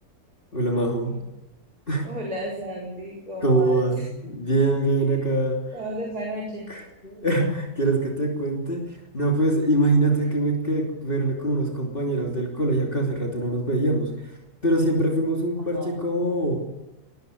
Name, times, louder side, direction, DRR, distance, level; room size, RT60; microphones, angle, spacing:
voice 1, 0.5-1.1 1.9-2.0 3.4-5.6 6.7-8.8 9.1-14.3 14.6-16.6, right 2 dB, 35° left, -1 dB, 3.2 m, -23 dB
voice 2, 2.0-4.1 5.7-6.7 10.2-10.3 15.6-16.0, right 1 dB, 80° right, -2 dB, 5.1 m, -33 dB
22.5 x 20.0 x 8.4 m, 0.98 s
omnidirectional pair, 1.6 m